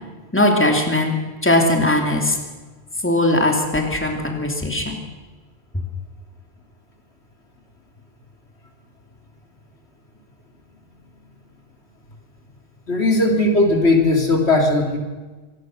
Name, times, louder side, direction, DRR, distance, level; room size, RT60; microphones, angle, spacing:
voice 1, 0.3-1.1 1.4-2.4 3.0-5.0, left 1 dB, 10° left, 2 dB, 2.7 m, -19 dB
voice 2, 12.9-15.0, left 2 dB, 75° left, 2 dB, 3.3 m, -17 dB
25.0 x 19.0 x 6.4 m, 1.3 s
omnidirectional pair, 1.1 m